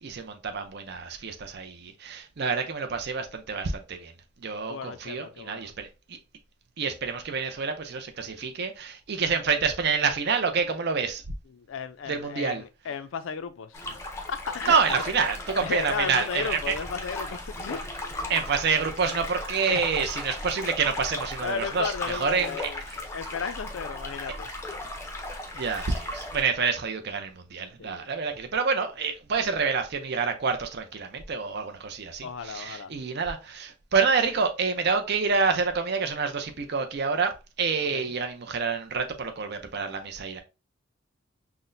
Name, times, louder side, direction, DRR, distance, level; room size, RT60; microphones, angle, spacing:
voice 1, 0.0-4.1 4.4-6.2 6.8-11.2 12.1-12.6 14.7-16.7 18.3-22.5 25.5-37.3 37.6-40.4, right 5 dB, 50° right, 0.5 m, -28 dB
voice 2, 4.7-5.7 11.5-14.0 14.3-14.8 15.6-18.3 19.2-19.3 19.6-19.9 21.4-24.5 27.8-28.1 32.2-32.9 37.9-38.1, left 6 dB, 65° left, 0.4 m, -35 dB
sound 1, 13.7-26.4, left 1 dB, 15° left, 0.5 m, -36 dB
5.8 x 2.1 x 2.6 m
head